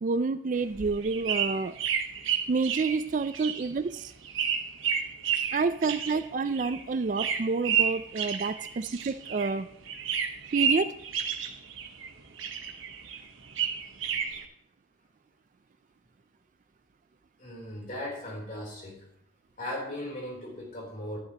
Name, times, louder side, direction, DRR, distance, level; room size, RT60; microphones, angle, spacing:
voice 1, 0.0-1.7 2.5-4.1 5.5-9.7 10.5-10.9, right 4 dB, 40° right, 12 dB, 0.4 m, -28 dB
sound 1, 0.5-9.6 9.8-12.1 12.4-14.4, right 7 dB, 75° right, 1.0 m, -31 dB
voice 2, 17.4-19.1 19.6-21.2, left 1 dB, 40° left, -1 dB, 3.5 m, -37 dB
11.5 x 11.0 x 2.9 m, 0.70 s
head